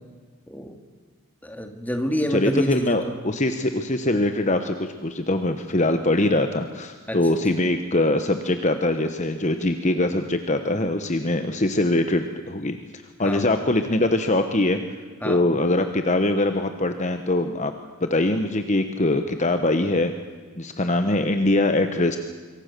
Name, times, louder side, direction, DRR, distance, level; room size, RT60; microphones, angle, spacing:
voice 1, 0.5-0.8 1.4-3.1 7.1-7.2 13.2-13.5 15.2-15.4, equal, 5° left, 5 dB, 2.1 m, -28 dB
voice 2, 2.3-12.8 13.2-14.8 15.2-17.7 18.0-20.1 20.5-22.2, left 2 dB, 30° left, 8 dB, 1.1 m, -22 dB
26.5 x 23.5 x 6.8 m, 1.5 s
head